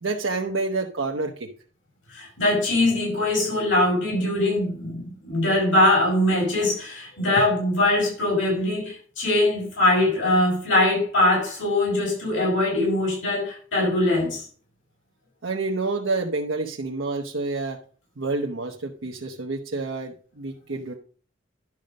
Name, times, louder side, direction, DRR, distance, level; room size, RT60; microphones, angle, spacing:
voice 1, 0.0-1.5 15.4-17.8 18.2-20.9, right 3 dB, 80° right, 1 dB, 0.9 m, -28 dB
voice 2, 2.1-14.5, left 1 dB, 90° left, -3 dB, 5.6 m, -22 dB
11.0 x 5.2 x 5.3 m, 0.43 s
head